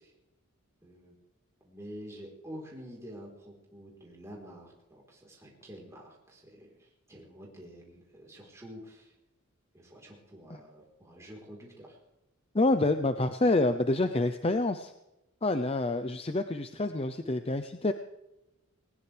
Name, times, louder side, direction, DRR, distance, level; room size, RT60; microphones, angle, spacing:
voice 1, 0.8-1.2 1.6-9.1 9.7-12.0, equal, 15° right, -3 dB, 4.0 m, -48 dB
voice 2, 12.5-14.9 15.4-17.9, left 2 dB, 25° left, 8 dB, 0.6 m, -27 dB
20.0 x 19.5 x 3.4 m, 0.94 s
head